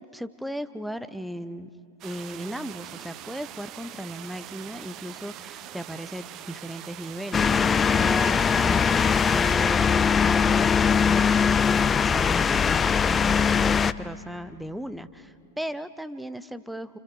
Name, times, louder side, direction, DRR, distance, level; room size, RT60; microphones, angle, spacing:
voice 1, 0.1-1.7 2.0-8.8 9.2-17.0, equal, ahead, 12 dB, 0.9 m, -37 dB
sound 1, 2.0-9.6, right 13 dB, 40° right, 0.7 m, -42 dB
sound 2, 7.3-13.9, left 6 dB, 20° left, 0.5 m, -21 dB
29.0 x 29.0 x 4.9 m, 2.3 s
figure-of-eight pair, 95°, 0 cm